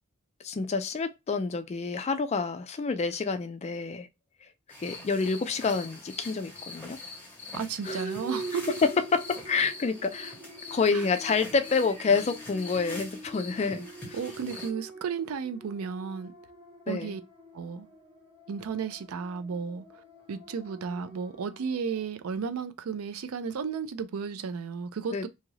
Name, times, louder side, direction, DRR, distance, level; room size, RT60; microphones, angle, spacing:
voice 1, 0.4-4.1 4.4-4.5 4.8-7.0 7.8-8.1 8.8-10.3 10.7-14.2 16.9-17.1 25.1-25.3, left 4 dB, 30° left, 0.3 m, -28 dB
sound 1, 4.7-14.7, left 3 dB, 10° left, 0.8 m, -44 dB
voice 2, 7.5-8.8 10.9-11.1 14.1-16.3 16.9-17.2 17.5-17.9 18.5-19.8 20.3-25.3, right 6 dB, 75° right, 0.4 m, -33 dB
sound 2, 7.9-22.1, right 3 dB, 25° right, 0.9 m, -44 dB
2.7 x 2.4 x 3.0 m
head